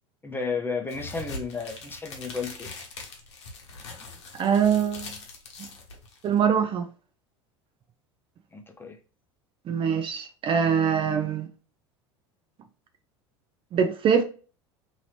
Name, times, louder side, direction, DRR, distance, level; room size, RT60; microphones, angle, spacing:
voice 1, 0.2-2.7 8.5-9.0, left 4 dB, 15° left, 0.7 m, -33 dB
sound 1, 0.9-6.4, left 3 dB, 75° left, 0.8 m, -42 dB
voice 2, 4.4-5.1 6.2-6.8 9.7-11.5 13.7-14.2, right 7 dB, 35° right, 0.5 m, -23 dB
2.9 x 2.7 x 2.9 m
hypercardioid pair, 75°, 15 cm